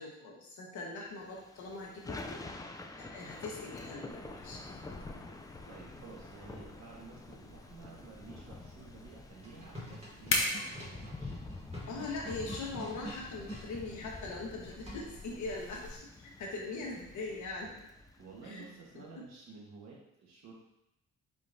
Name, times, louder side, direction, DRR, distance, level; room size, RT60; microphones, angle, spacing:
voice 1, 0.0-2.4 3.0-4.6 11.9-17.7 18.4-18.6 18.9-19.2, left 3 dB, 75° left, -2 dB, 1.2 m, -41 dB
Thunder / Rain, 1.2-18.7, left 2 dB, 10° left, 0.3 m, -48 dB
sound 1, 4.1-16.0, left 2 dB, 45° left, 0.9 m, -42 dB
voice 2, 5.7-11.3 18.2-20.5, right 4 dB, 60° right, -3 dB, 1.4 m, -52 dB
sound 2, 9.3-13.7 14.9-15.3, right 1 dB, 20° right, 1.5 m, -47 dB
4.5 x 3.6 x 2.6 m, 0.84 s
cardioid pair, 90°, 30 cm